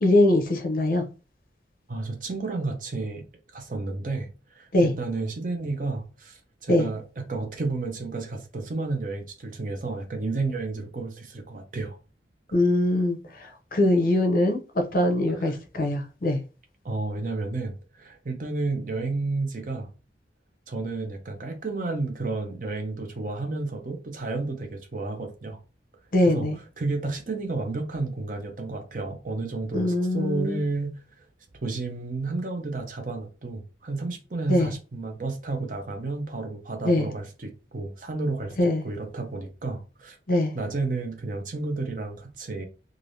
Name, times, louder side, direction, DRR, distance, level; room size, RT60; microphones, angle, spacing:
voice 1, 0.0-1.0 4.7-4.9 6.7-6.9 12.5-14.6 14.9-16.4 26.1-26.6 29.7-30.6 34.5-34.7 36.8-37.1 38.6-38.8 40.3-40.5, left 1 dB, 50° left, 0.7 m, -22 dB
voice 2, 1.9-3.3 3.5-12.0 15.4-15.5 16.8-19.9 20.7-25.6 26.3-26.5 26.8-31.3 31.6-38.6 38.8-40.2 40.5-42.7, right 3 dB, 45° right, 0.6 m, -31 dB
3.3 x 2.5 x 2.6 m
head